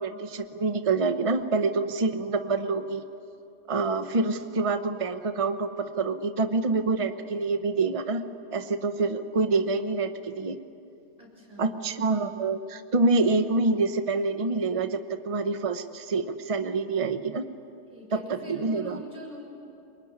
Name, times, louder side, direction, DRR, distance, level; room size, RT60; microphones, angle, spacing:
voice 1, 0.0-3.0 3.7-8.2 8.5-10.6 11.6-17.4 18.1-18.2 18.5-19.0, right 3 dB, 25° right, 8 dB, 0.9 m, -26 dB
voice 2, 11.2-12.1 17.9-19.5, equal, 20° left, -4 dB, 6.2 m, -43 dB
26.0 x 23.0 x 9.7 m, 2.6 s
omnidirectional pair, 1.9 m